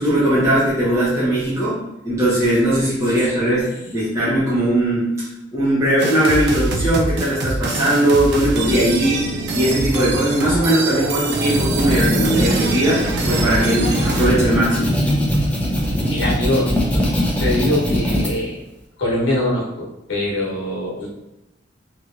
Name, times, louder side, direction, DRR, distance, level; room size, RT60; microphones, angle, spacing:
voice 1, 0.0-5.1 5.5-14.9, right 1 dB, 15° right, -10 dB, 0.9 m, -19 dB
voice 2, 3.3-3.6 16.1-17.0 17.4-18.6 19.0-21.1, left 1 dB, 85° left, -4 dB, 1.0 m, -23 dB
sound 1, 6.0-14.3, right 3 dB, 60° right, 0.4 m, -24 dB
sound 2, 11.2-18.3, equal, 10° left, 0.5 m, -21 dB
3.0 x 2.8 x 2.4 m, 0.92 s
head